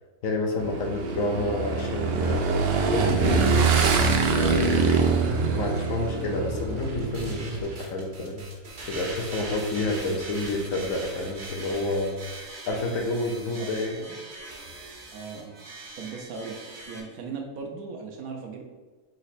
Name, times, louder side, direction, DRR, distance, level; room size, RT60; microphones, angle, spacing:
voice 1, 0.2-3.6 4.3-8.4 8.9-12.2 12.7-14.0, left 2 dB, 65° left, 2 dB, 1.0 m, -29 dB
Motorcycle / Engine, 0.6-7.6, right 4 dB, 90° right, 0.5 m, -24 dB
voice 2, 5.0-5.3 13.6-14.2 15.1-15.6 16.0-16.6 16.9-18.6, right 5 dB, 70° right, 2 dB, 1.1 m, -38 dB
sound 1, 6.8-17.0, right 2 dB, 50° right, 1.0 m, -41 dB
4.1 x 3.0 x 4.1 m, 1.3 s
omnidirectional pair, 1.6 m